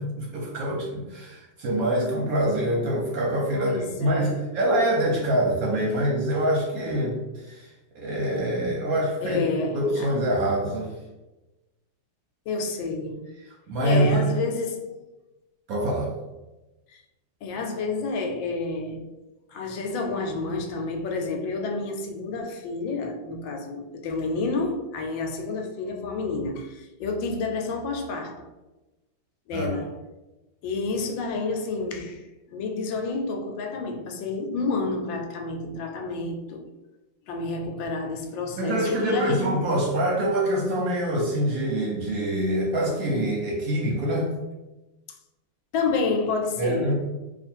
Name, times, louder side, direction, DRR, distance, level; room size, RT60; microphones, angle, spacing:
voice 1, 0.0-7.7 7.9-9.4 9.7-10.9 13.7-14.3 15.7-16.1 29.5-29.7 38.6-44.3 46.6-46.9, right 1 dB, 60° right, 1.0 m, -25 dB
voice 2, 3.5-4.5 9.2-10.1 12.5-13.2 13.8-14.9 16.9-17.0 17.4-19.1 19.5-28.5 29.5-30.0 30.6-36.6 37.3-39.7 45.7-46.9, left 3 dB, 80° left, 1.3 m, -29 dB
2.9 x 2.5 x 4.3 m
omnidirectional pair, 2.1 m